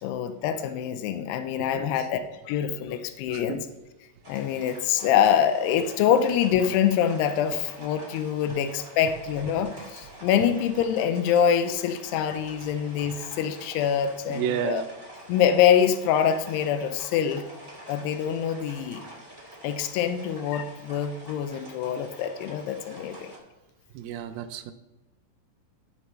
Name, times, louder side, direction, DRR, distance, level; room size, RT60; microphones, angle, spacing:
voice 1, 0.0-2.2 2.5-3.6 4.3-14.8 15.3-17.5 17.9-19.0 19.6-23.3, left 8 dB, 90° left, 9 dB, 2.8 m, -25 dB
voice 2, 3.3-3.6 14.3-14.9 23.9-24.7, right 9 dB, 80° right, 10 dB, 2.4 m, -31 dB
sound 1, 4.2-23.4, right 1 dB, 20° right, 2.5 m, -46 dB
18.5 x 6.8 x 3.2 m, 1.1 s
omnidirectional pair, 4.6 m